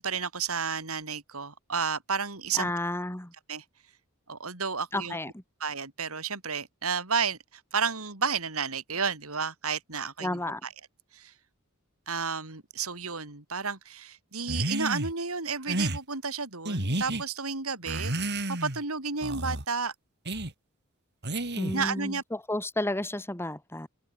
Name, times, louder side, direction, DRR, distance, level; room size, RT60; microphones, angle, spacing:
voice 1, 0.0-2.7 3.5-3.6 4.3-5.2 5.6-10.7 11.1-11.3 12.1-18.1 18.5-19.9 21.7-22.2, right 5 dB, 75° right, 4.3 m, -32 dB
voice 2, 2.5-3.3 4.9-5.4 10.2-10.6 21.5-23.9, left 1 dB, 10° left, 1.8 m, -32 dB
sound 1, 14.5-15.1 15.7-16.0 16.6-17.2 17.8-18.8 19.2-19.6 20.3-20.5 21.2-21.9, right 1 dB, 50° right, 4.5 m, -31 dB
head